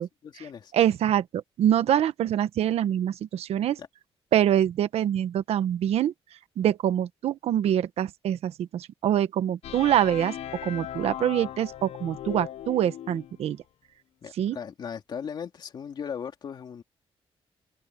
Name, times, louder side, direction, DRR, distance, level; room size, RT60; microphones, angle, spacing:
voice 1, 0.0-0.7 3.8-3.9 14.2-16.8, left 7 dB, 45° left, 3.0 m, -38 dB
voice 2, 0.7-3.8 4.3-6.1 6.6-10.3 10.6-13.6 14.4-14.6, right 10 dB, 80° right, 1.1 m, -25 dB
sound 1, 9.6-13.4, left 11 dB, 80° left, 0.7 m, -38 dB
wide cardioid pair, 180°, 10 cm